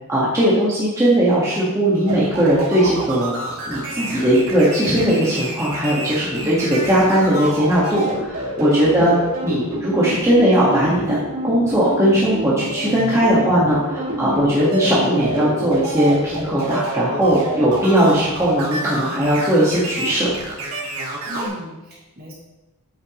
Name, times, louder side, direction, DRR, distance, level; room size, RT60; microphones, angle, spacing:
voice 1, 0.1-3.3 3.7-9.2 9.4-11.2 11.4-20.3, right 1 dB, 15° right, -8 dB, 1.7 m, -18 dB
sound 1, 2.1-21.5, right 1 dB, 80° right, 2.3 m, -28 dB
voice 2, 6.3-6.6 8.8-9.2 14.2-14.5 21.3-22.3, left 1 dB, 45° right, -6 dB, 3.1 m, -34 dB
8.6 x 8.4 x 3.1 m, 1.0 s
head